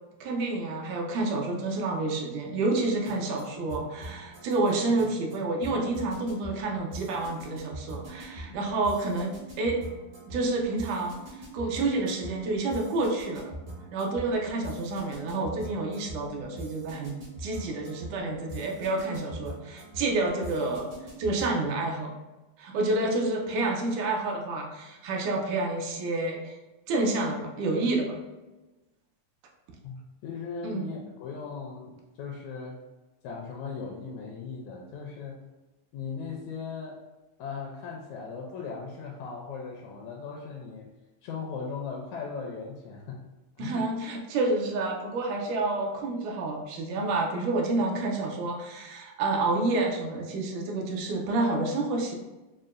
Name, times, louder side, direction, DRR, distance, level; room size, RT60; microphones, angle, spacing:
voice 1, 0.2-9.8 10.3-13.5 13.9-20.9 21.2-22.2 22.6-26.6 26.9-28.2 30.6-30.9 43.6-52.2, right 2 dB, 85° right, 0 dB, 2.0 m, -29 dB
sound 1, 2.8-21.7, equal, 65° right, 1.0 m, -43 dB
voice 2, 29.8-32.8 33.2-35.4 35.9-37.0 37.4-40.9 41.2-43.2 43.6-43.8, left 5 dB, 80° left, 0 dB, 1.7 m, -38 dB
6.4 x 2.1 x 2.4 m, 1.1 s
omnidirectional pair, 3.5 m